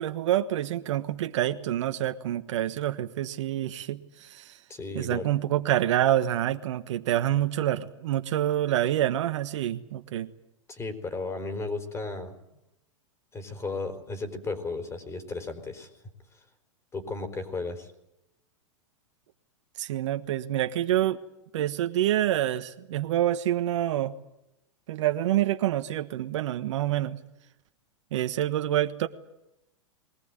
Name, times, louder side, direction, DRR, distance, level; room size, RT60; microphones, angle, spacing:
voice 1, 0.0-4.6 4.9-10.3 19.8-21.2 21.5-24.1 24.9-27.2 28.1-29.1, right 12 dB, 70° right, 9 dB, 1.4 m, -27 dB
voice 2, 4.7-5.3 10.7-12.3 13.3-15.9 16.9-17.9, left 3 dB, 15° left, 7 dB, 4.6 m, -34 dB
22.0 x 19.0 x 9.1 m, 0.87 s
hypercardioid pair, 110°, 16 cm